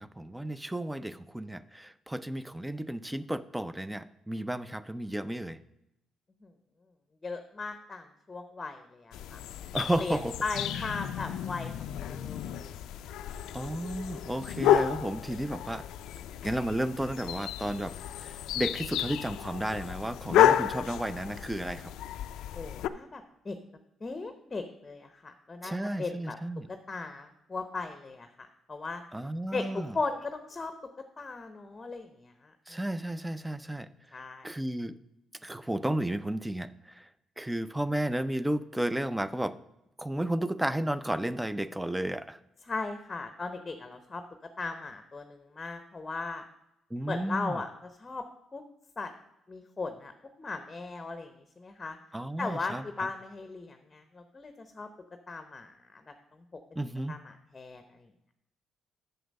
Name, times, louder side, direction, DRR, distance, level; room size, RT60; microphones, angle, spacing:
voice 1, 0.0-5.6 9.7-10.4 10.8-10.9 13.5-15.8 16.4-21.9 25.6-26.7 29.1-30.0 32.7-33.9 34.4-35.0 35.4-36.7 37.0-37.1 37.4-39.6 40.0-42.4 46.9-47.6 52.1-52.8 56.8-57.1, right 1 dB, 10° right, 14 dB, 0.5 m, -33 dB
voice 2, 7.2-9.4 10.0-11.7 12.0-12.8 22.5-23.6 24.0-26.4 26.9-29.0 29.5-30.7 31.2-32.8 34.1-34.5 42.6-44.2 44.6-46.4 47.1-47.7 48.0-48.2 48.5-48.6 49.0-49.1 49.5-50.1 50.4-52.0 52.4-54.9 55.3-56.0 57.1-58.1, left 3 dB, 25° left, 8 dB, 0.8 m, -37 dB
sound 1, 9.1-22.9, left 11 dB, 80° left, 0.4 m, -31 dB
7.8 x 6.9 x 5.3 m, 0.86 s
cardioid pair, 75°, 0 cm